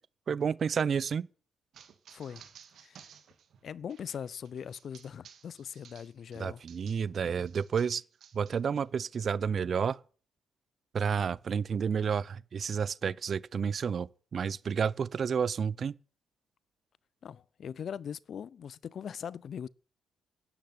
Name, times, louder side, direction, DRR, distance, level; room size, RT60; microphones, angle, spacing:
voice 1, 0.3-1.3 6.4-8.0 8.3-10.0 10.9-16.0, right 6 dB, 50° right, 0.7 m, -30 dB
sound 1, 1.7-7.1 7.4-8.8, right 8 dB, 65° right, 2.8 m, -56 dB
voice 2, 2.1-2.4 2.8-3.1 3.6-6.6 17.2-19.7, left 8 dB, 55° left, 0.7 m, -41 dB
12.5 x 10.5 x 9.6 m
cardioid pair, 90°, 0 cm